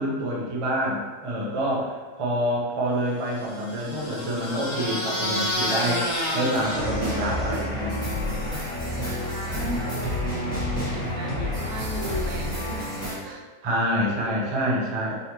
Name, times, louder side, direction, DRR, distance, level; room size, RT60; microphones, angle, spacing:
voice 1, 0.0-7.9 13.6-15.1, equal, 35° right, -3 dB, 0.5 m, -27 dB
sound 1, 3.3-7.8, left 1 dB, 75° left, 1.4 m, -30 dB
sound 2, 6.5-13.2, left 1 dB, 5° left, 0.9 m, -29 dB
voice 2, 8.9-10.2 10.9-12.9 13.2-13.5 14.1-14.5, right 2 dB, 70° right, 2 dB, 1.0 m, -37 dB
3.9 x 3.2 x 2.9 m, 1.3 s
omnidirectional pair, 1.6 m